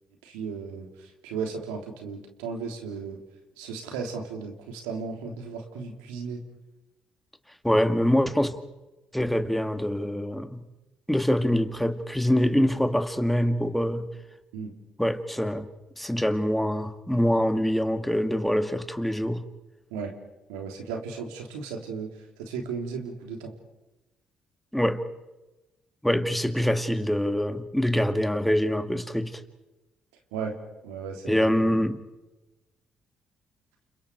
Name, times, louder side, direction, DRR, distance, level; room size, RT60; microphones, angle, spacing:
voice 1, 0.2-3.2 3.6-6.4 14.5-14.7 19.9-20.1 20.5-22.1 22.4-23.5 30.3-30.6 30.8-31.8, right 5 dB, 90° right, 3 dB, 3.4 m, -35 dB
voice 2, 7.6-8.6 9.1-10.6 11.1-14.1 15.0-15.7 16.0-19.4 24.7-25.0 26.0-29.4 31.3-32.0, equal, 5° left, 8 dB, 2.4 m, -24 dB
30.0 x 28.0 x 4.7 m, 1.0 s
hypercardioid pair, 55°, 3 cm